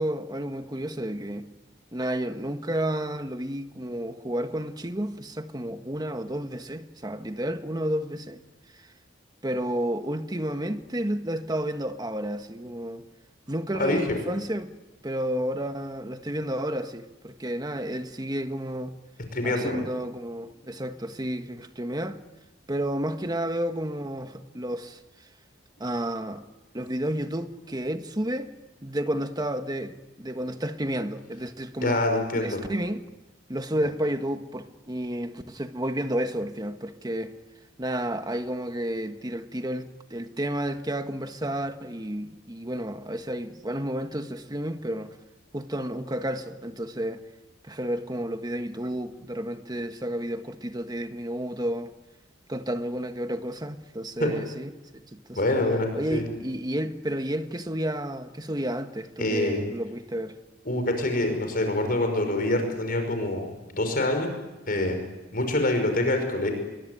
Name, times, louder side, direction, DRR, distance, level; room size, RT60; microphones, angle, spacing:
voice 1, 0.0-1.5 1.9-8.4 8.7-8.8 9.4-13.0 13.5-14.7 15.0-18.9 19.4-22.2 22.7-25.0 25.8-26.4 26.7-28.5 28.8-32.0 32.4-33.0 33.5-37.3 37.8-45.1 45.5-47.2 47.6-51.9 52.5-55.4 55.9-60.4, right 1 dB, 20° right, 1.4 m, -31 dB
voice 2, 13.7-14.2 19.3-19.8 31.8-32.6 54.2-54.3 55.3-56.2 59.2-59.6 60.7-64.3 64.7-65.0 65.3-66.5, left 1 dB, 50° left, 5.5 m, -25 dB
27.0 x 23.0 x 9.5 m
head